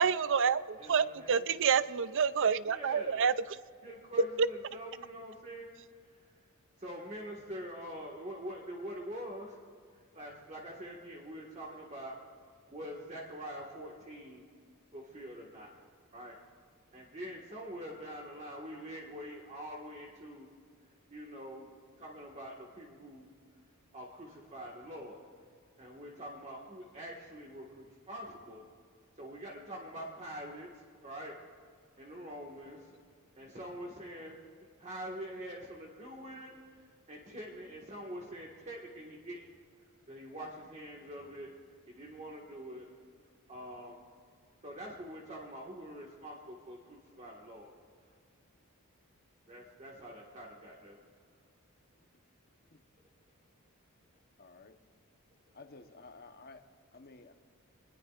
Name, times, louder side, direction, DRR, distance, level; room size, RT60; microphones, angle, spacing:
voice 1, 0.0-3.3 4.4-4.5, right 6 dB, 60° right, 15 dB, 0.5 m, -28 dB
voice 2, 0.8-1.4 2.6-3.2 3.8-5.7 6.0-6.5 6.8-9.6 9.9-14.4 14.9-15.8 16.1-16.4 16.9-20.5 21.1-23.3 23.9-25.3 25.8-28.6 29.1-31.4 32.0-33.0 33.3-39.5 39.8-41.5 41.9-42.9 43.5-44.0 44.6-47.7 49.5-51.0, equal, 30° right, -2 dB, 1.7 m, -45 dB
voice 3, 54.4-54.8 55.5-56.6 56.9-57.3, left 3 dB, 45° left, 7 dB, 1.0 m, -53 dB
24.5 x 20.5 x 2.5 m, 2.2 s
head